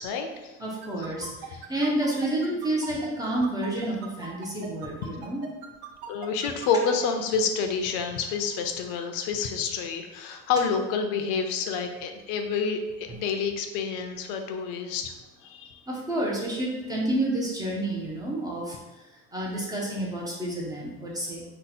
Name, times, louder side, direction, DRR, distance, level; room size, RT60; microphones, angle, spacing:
voice 1, 0.0-0.5 6.1-15.1 15.4-15.8, left 5 dB, 70° left, 5 dB, 0.5 m, -28 dB
voice 2, 0.6-5.4 15.9-18.8 19.3-21.4, right 1 dB, 10° right, -3 dB, 0.4 m, -29 dB
sound 1, 0.8-7.1, right 7 dB, 60° right, 0.6 m, -40 dB
2.8 x 2.0 x 4.0 m, 1.1 s
cardioid pair, 140°, 33 cm